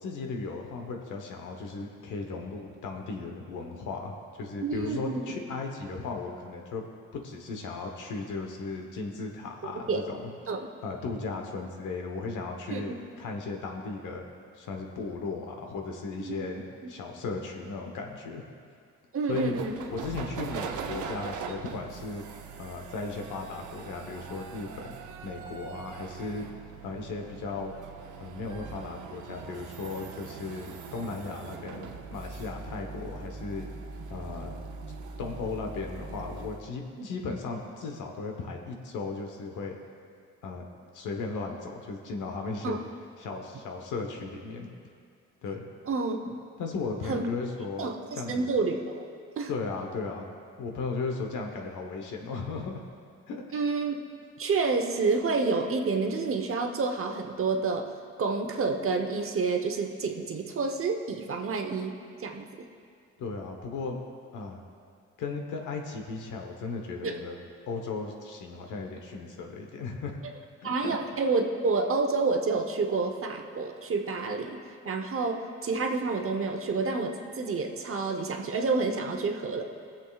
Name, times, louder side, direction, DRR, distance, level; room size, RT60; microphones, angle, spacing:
voice 1, 0.0-6.8 7.1-10.3 10.8-14.2 14.5-18.4 19.3-19.5 19.9-22.2 22.6-25.0 25.2-26.5 26.8-27.7 28.2-33.7 34.1-34.5 35.2-39.8 40.4-40.6 40.9-42.8 43.2-44.7 45.4-45.6 46.6-48.5 49.5-52.8 53.3-53.4 63.2-64.0 64.3-64.6 65.2-67.4 67.7-70.2 70.6-71.0, left 4 dB, 80° left, 3 dB, 1.2 m, -36 dB
voice 2, 4.6-5.2 9.6-10.0 10.5-10.7 12.7-12.8 16.2-16.5 19.1-19.8 37.0-37.1 42.6-42.8 45.9-46.4 47.1-47.3 47.8-49.0 49.4-49.5 53.5-54.0 54.4-57.9 58.2-62.5 67.0-67.1 70.6-74.6 74.8-79.6, right 4 dB, 45° right, 4 dB, 1.0 m, -29 dB
sound 1, 19.3-36.7, right 5 dB, 80° right, 0.8 m, -41 dB
21.0 x 7.3 x 2.4 m, 2.3 s
cardioid pair, 90°, 30 cm